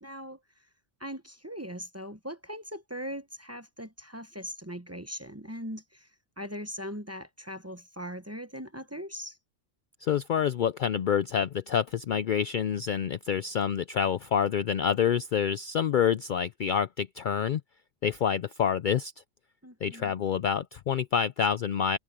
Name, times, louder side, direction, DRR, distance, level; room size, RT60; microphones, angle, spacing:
voice 1, 0.0-0.4 1.0-6.1 6.4-9.4 19.6-20.2, equal, 15° right, 0.7 m, -40 dB
voice 2, 10.0-17.6 18.0-19.1 19.8-22.0, left 8 dB, 80° left, 0.4 m, -27 dB
omnidirectional pair, 1.4 m